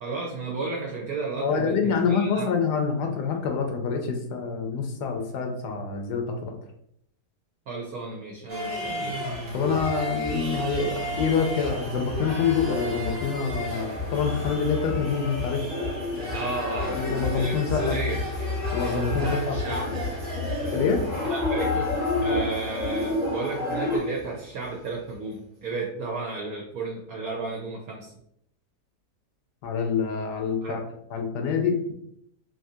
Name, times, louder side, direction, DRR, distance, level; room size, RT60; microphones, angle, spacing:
voice 1, 0.0-2.5 7.7-9.1 16.3-17.0 17.3-18.2 19.2-19.9 20.6-20.9 21.2-28.1 30.6-30.8, right 3 dB, 65° right, -2 dB, 0.9 m, -33 dB
voice 2, 1.4-6.5 9.5-15.6 16.7-17.9 18.7-19.6 20.7-21.0 29.6-30.8 31.1-31.9, left 5 dB, 80° left, 4 dB, 1.2 m, -26 dB
sound 1, 8.5-24.9 25.1-25.2, left 2 dB, 20° right, 1.1 m, -33 dB
sound 2, 10.9-24.0, left 2 dB, 25° left, 0.7 m, -32 dB
3.5 x 2.6 x 2.7 m, 0.73 s
omnidirectional pair, 1.8 m